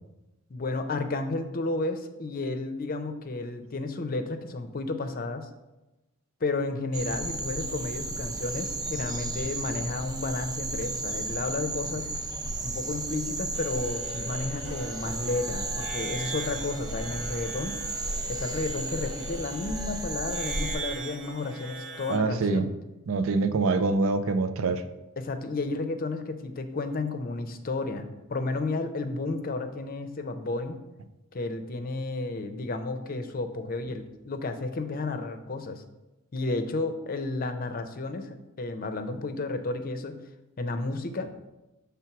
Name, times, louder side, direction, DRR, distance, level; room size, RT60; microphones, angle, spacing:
voice 1, 0.5-5.5 6.4-12.1 12.6-17.8 18.3-22.7 25.2-30.8 31.3-35.8 36.3-40.2 40.6-41.3, left 3 dB, 45° left, 8 dB, 0.6 m, -32 dB
sound 1, 6.9-20.8, right 2 dB, 20° right, 0.6 m, -34 dB
sound 2, 13.5-22.2, right 2 dB, 65° right, 0.8 m, -40 dB
voice 2, 22.1-22.7 23.1-24.8, right 3 dB, 85° right, 10 dB, 0.5 m, -25 dB
6.0 x 3.5 x 5.8 m, 1.0 s
head